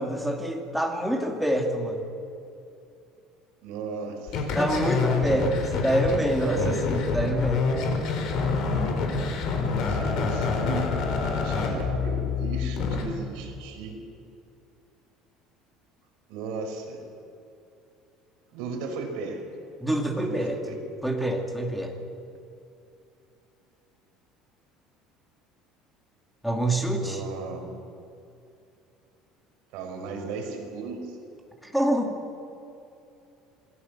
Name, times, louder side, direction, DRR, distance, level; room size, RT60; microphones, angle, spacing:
voice 1, 0.0-2.1 4.5-7.7 19.8-22.0 26.4-27.2 31.6-32.2, right 1 dB, ahead, 2 dB, 2.4 m, -26 dB
voice 2, 3.6-4.6 6.3-6.8 9.8-14.0 16.3-17.0 18.5-19.4 20.2-20.4 20.7-20.8 27.0-27.6 29.7-31.2, right 4 dB, 70° right, 3 dB, 4.8 m, -36 dB
sound 1, 4.3-13.0, left 4 dB, 55° left, 4.3 m, -27 dB
27.0 x 19.5 x 7.2 m, 2.7 s
cardioid pair, 170°, 0 cm